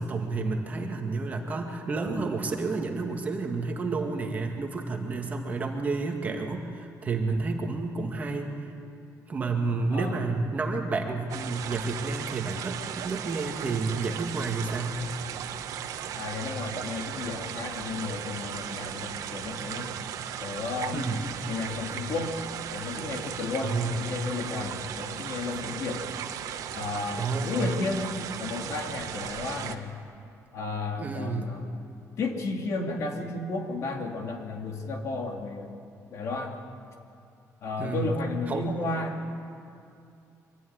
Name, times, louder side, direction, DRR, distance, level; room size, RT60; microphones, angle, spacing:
voice 1, 0.0-8.5 9.3-15.0 20.9-21.2 23.6-24.0 27.2-27.7 31.0-31.5 37.8-38.1 38.5-39.0, right 3 dB, 25° right, 2 dB, 2.0 m, -30 dB
sound 1, 11.3-29.8, right 9 dB, 70° right, 1.2 m, -36 dB
voice 2, 16.1-19.9 20.4-21.0 21.5-22.4 22.7-26.0 26.7-28.1 28.4-29.9 30.5-31.7 32.2-35.8 36.1-36.6 37.6-39.2, left 3 dB, 55° left, 2 dB, 2.6 m, -33 dB
24.5 x 15.5 x 9.6 m, 2.5 s
cardioid pair, 170°, 6 cm